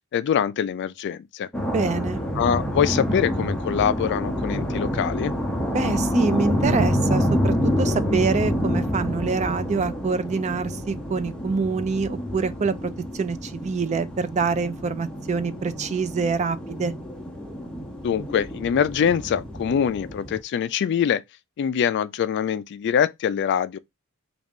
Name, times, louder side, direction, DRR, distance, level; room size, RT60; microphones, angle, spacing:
voice 1, 0.1-1.5 2.4-5.3 18.0-21.2 21.6-23.8, left 8 dB, 50° left, 0.3 m, -24 dB
sound 1, 1.5-20.4, equal, 5° left, 0.7 m, -27 dB
voice 2, 1.7-2.2 5.7-16.9, right 4 dB, 30° right, 0.3 m, -26 dB
3.7 x 2.4 x 3.5 m
head